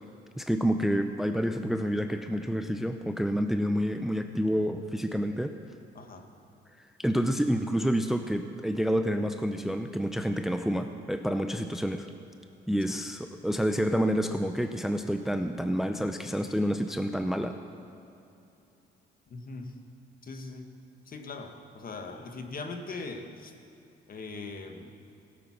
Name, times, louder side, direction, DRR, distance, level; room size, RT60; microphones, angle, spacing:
voice 1, 0.4-5.5 7.0-12.1 12.7-17.6, equal, ahead, 7 dB, 0.6 m, -28 dB
voice 2, 5.9-6.3 12.9-13.0 19.3-19.7 20.2-20.7 21.1-23.5 24.1-24.9, left 3 dB, 45° left, 5 dB, 1.5 m, -40 dB
16.5 x 9.0 x 5.9 m, 2.8 s
cardioid pair, 90°, 20 cm